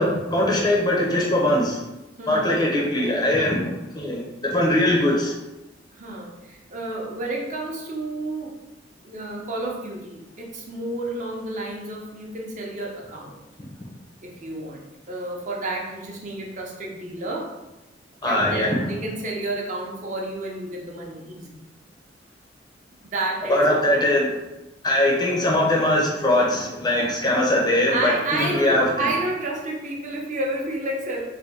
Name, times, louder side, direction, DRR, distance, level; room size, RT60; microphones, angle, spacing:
voice 1, 0.0-1.8 2.3-5.3 18.2-18.8 23.5-24.3 24.8-28.9, left 1 dB, 20° left, -3 dB, 0.6 m, -21 dB
voice 2, 2.2-2.5 5.9-8.6 9.0-13.4 14.2-17.5 18.3-21.5 23.0-23.7 27.9-31.2, right 2 dB, 40° right, -2 dB, 0.7 m, -30 dB
3.4 x 2.2 x 4.0 m, 0.99 s
head